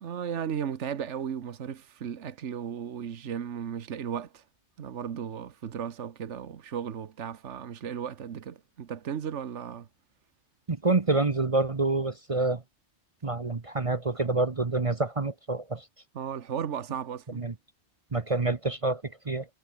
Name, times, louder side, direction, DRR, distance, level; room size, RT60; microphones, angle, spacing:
voice 1, 0.0-4.4 4.8-9.9 16.1-17.4, right 8 dB, 75° right, 1.4 m, -35 dB
voice 2, 10.7-12.6 13.2-15.8 17.4-17.5 18.1-19.5, right 3 dB, 30° right, 1.0 m, -27 dB
omnidirectional pair, 1.2 m